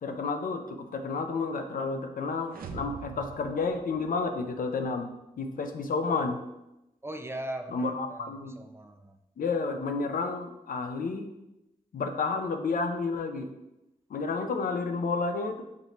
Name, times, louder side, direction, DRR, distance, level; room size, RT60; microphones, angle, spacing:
voice 1, 0.0-5.1 5.4-6.4 7.7-8.6 9.4-11.3 11.9-13.5 14.1-15.6, left 4 dB, 75° left, 6 dB, 0.5 m, -31 dB
sound 1, 2.5-4.6, right 5 dB, 90° right, 0.4 m, -44 dB
voice 2, 7.0-9.2, right 1 dB, 15° right, 5 dB, 0.4 m, -39 dB
6.0 x 2.6 x 3.0 m, 0.92 s
wide cardioid pair, 85°, 15 cm